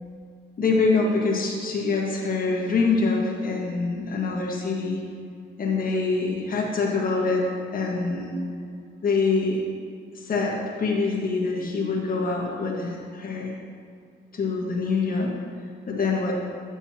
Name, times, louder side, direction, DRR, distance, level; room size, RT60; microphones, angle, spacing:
voice 1, 0.6-5.0 5.6-7.4 7.7-8.3 9.0-9.6 10.1-13.5 14.3-15.3 15.9-16.4, left 4 dB, 45° left, -2 dB, 1.5 m, -25 dB
9.9 x 7.0 x 2.8 m, 2.3 s
cardioid pair, 90°, 20 cm